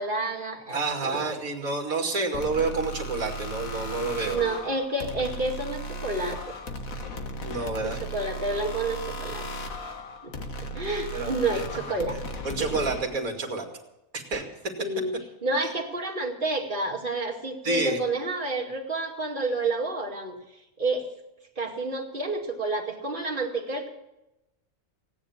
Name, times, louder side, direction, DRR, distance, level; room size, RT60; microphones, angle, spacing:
voice 1, 0.0-1.3 4.2-6.5 7.8-9.4 10.2-10.3 10.7-12.2 12.6-12.9 14.8-15.2 15.4-20.3 20.8-21.0 21.6-23.9, right 2 dB, 35° right, 1 dB, 2.5 m, -29 dB
voice 2, 0.7-4.5 7.4-8.0 11.1-11.6 12.4-13.7 14.1-14.4 17.6-18.0, right 3 dB, 75° right, 3 dB, 2.7 m, -29 dB
sound 1, 2.3-13.0, equal, 70° left, 1.9 m, -36 dB
17.0 x 10.0 x 7.2 m, 0.92 s
omnidirectional pair, 1.5 m